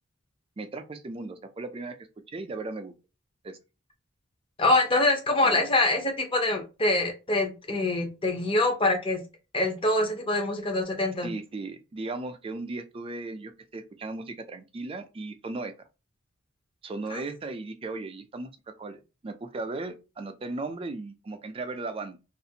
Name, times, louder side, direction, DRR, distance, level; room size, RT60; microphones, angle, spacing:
voice 1, 0.6-2.9 3.4-3.6 5.4-5.6 11.2-15.7 16.8-22.2, right 3 dB, 25° right, 0.3 m, -37 dB
voice 2, 4.6-9.2 9.5-11.3 17.1-17.2, left 2 dB, 25° left, 0.6 m, -25 dB
2.5 x 2.4 x 2.7 m
head